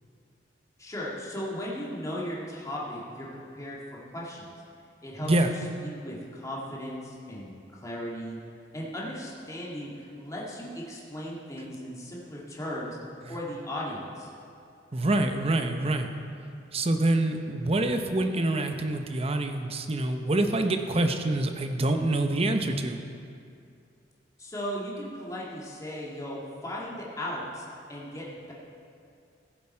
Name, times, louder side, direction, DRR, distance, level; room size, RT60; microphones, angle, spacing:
voice 1, 0.8-3.8 4.1-4.5 5.0-5.3 5.8-8.4 8.7-13.0 13.3-14.3 24.4-28.5, equal, 20° left, -5 dB, 1.9 m, -37 dB
voice 2, 14.9-16.1 16.7-23.0, right 2 dB, 35° right, 6 dB, 0.7 m, -26 dB
16.0 x 7.4 x 4.4 m, 2.4 s
head